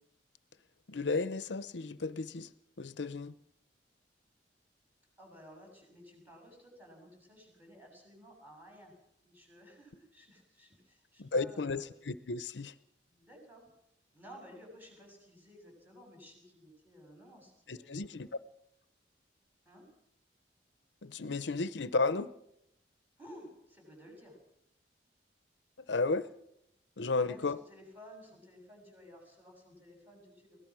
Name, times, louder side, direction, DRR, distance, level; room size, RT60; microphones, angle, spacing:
voice 1, 0.9-2.5 2.8-3.3 11.2-12.7 17.7-18.3 21.0-22.3 25.9-26.3 27.0-27.6, left 3 dB, 80° left, 15 dB, 0.8 m, -33 dB
voice 2, 5.2-8.9 9.2-11.9 13.1-13.7 14.1-18.3 19.7-19.9 23.2-24.4 27.2-30.6, equal, 10° right, 1 dB, 7.6 m, -55 dB
23.5 x 17.5 x 6.2 m, 0.76 s
head